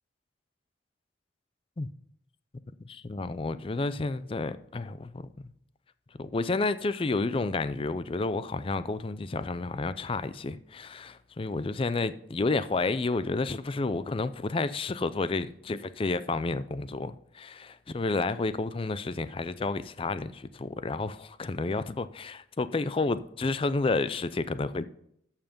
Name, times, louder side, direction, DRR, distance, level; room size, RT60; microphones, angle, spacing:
voice 1, 2.8-5.3 6.2-24.8, left 3 dB, 30° left, 0.4 m, -30 dB
14.0 x 5.7 x 5.3 m
head